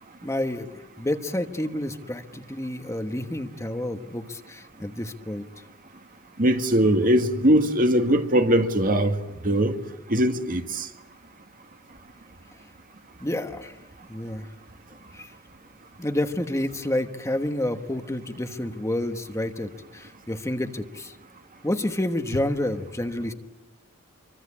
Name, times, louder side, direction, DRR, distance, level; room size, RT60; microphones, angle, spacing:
voice 1, 0.2-0.7 1.0-5.4 13.2-13.7 14.1-14.5 15.1-15.3 16.0-21.1 21.6-23.3, left 1 dB, 15° left, 1.2 m, -29 dB
voice 2, 6.4-9.2 9.4-9.8 10.1-10.9, right 1 dB, 40° right, 1.8 m, -21 dB
27.0 x 24.5 x 8.5 m
head